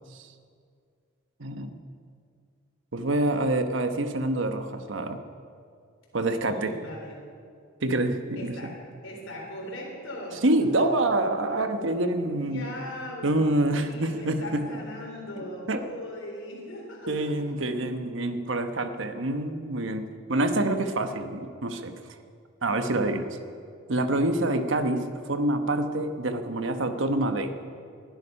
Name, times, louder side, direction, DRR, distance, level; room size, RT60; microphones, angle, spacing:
voice 1, 1.4-1.8 2.9-5.2 6.1-6.8 7.8-8.7 10.4-12.6 13.2-14.7 15.7-15.8 17.1-21.9 22.6-23.4 23.9-27.5, right 2 dB, 70° right, 8 dB, 1.1 m, -26 dB
voice 2, 6.3-7.4 8.3-10.7 12.3-17.4, left 1 dB, 75° left, -2 dB, 3.9 m, -40 dB
20.0 x 11.5 x 5.5 m, 2.3 s
head